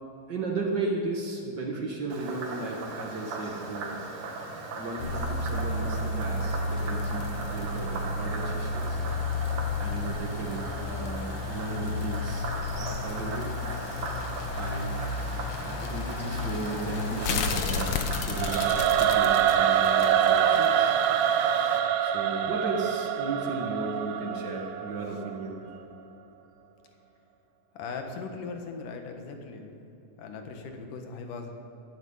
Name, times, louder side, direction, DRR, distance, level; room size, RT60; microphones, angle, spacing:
voice 1, 0.3-4.0 4.8-9.1 9.8-13.5 14.5-15.0 15.6-21.0 22.0-25.6, right 3 dB, 50° right, 0 dB, 1.3 m, -35 dB
Frog, 2.1-21.8, right 3 dB, 75° right, 3.3 m, -38 dB
sound 1, 5.0-20.7 21.0-21.1, left 3 dB, 90° left, 1.2 m, -32 dB
Singing / Musical instrument, 18.4-25.5, right 9 dB, 90° right, 2.5 m, -25 dB
voice 2, 27.7-29.7 30.2-31.5, left 4 dB, 70° left, 4 dB, 2.8 m, -39 dB
16.0 x 12.5 x 5.6 m, 2.9 s
omnidirectional pair, 4.1 m